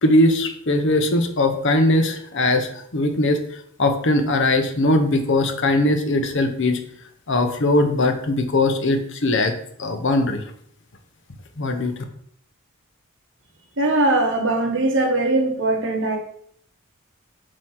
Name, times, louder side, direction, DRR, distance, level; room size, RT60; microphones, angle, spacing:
voice 1, 0.0-3.4 3.8-6.8 7.3-9.5 9.8-10.4 11.6-11.9, left 2 dB, 60° left, 7 dB, 1.0 m, -20 dB
voice 2, 13.8-16.2, right 2 dB, 65° right, 1 dB, 1.6 m, -20 dB
7.6 x 3.1 x 5.8 m, 0.64 s
head